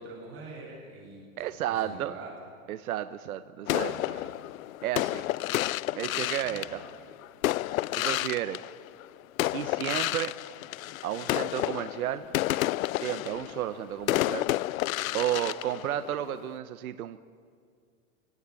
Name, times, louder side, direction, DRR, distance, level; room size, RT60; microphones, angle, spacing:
voice 1, 0.0-2.3 3.7-4.3 6.4-6.8, right 3 dB, 25° right, -3 dB, 7.5 m, -44 dB
voice 2, 1.4-2.1 2.7-3.9 4.8-5.2 5.9-6.8 8.0-8.6 9.5-10.3 11.0-12.2 13.0-14.4 15.1-17.2, right 12 dB, 75° right, 10 dB, 1.2 m, -32 dB
sound 1, 3.7-9.1 9.4-16.6, left 16 dB, 70° left, 0.6 m, -31 dB
28.0 x 18.0 x 9.9 m, 2.2 s
supercardioid pair, 150°, 43 cm